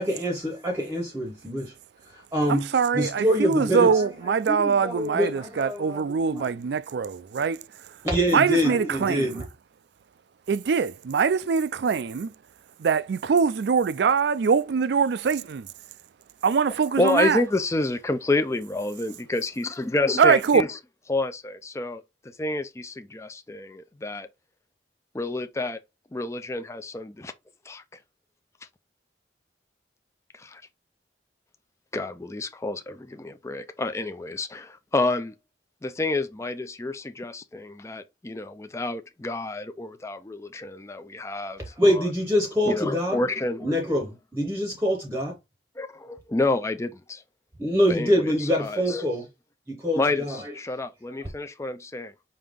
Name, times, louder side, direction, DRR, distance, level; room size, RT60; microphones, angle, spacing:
voice 1, 0.0-1.7 2.1-2.7 2.9-4.1 4.5-6.5 8.0-9.4 41.8-43.2 43.6-45.4 47.6-49.2 49.7-50.4, equal, 15° right, 0.8 m, -25 dB
voice 2, 2.5-7.6 8.3-9.4 10.5-12.3 12.8-15.7 16.4-17.4 20.2-20.6, right 6 dB, 60° right, 0.4 m, -23 dB
voice 3, 17.0-20.8 21.1-24.3 25.1-25.8 26.1-27.3 27.6-28.0 28.6-28.7 30.3-30.6 31.9-35.3 35.8-42.1 42.7-43.7 45.8-47.2 47.9-49.0 49.9-52.1, left 2 dB, 15° left, 0.4 m, -29 dB
5.3 x 2.8 x 3.5 m
head